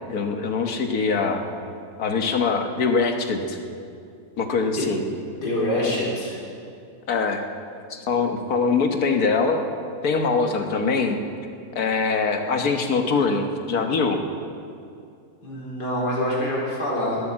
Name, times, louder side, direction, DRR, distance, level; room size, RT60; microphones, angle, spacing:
voice 1, 0.1-1.4 2.0-3.6 4.4-5.0 7.1-7.4 7.9-9.6 10.0-11.2 11.7-14.2, left 4 dB, 65° left, 5 dB, 1.7 m, -23 dB
voice 2, 5.4-6.3 15.4-17.2, left 1 dB, 80° left, -4 dB, 4.4 m, -25 dB
19.5 x 8.8 x 7.5 m, 2.4 s
omnidirectional pair, 1.7 m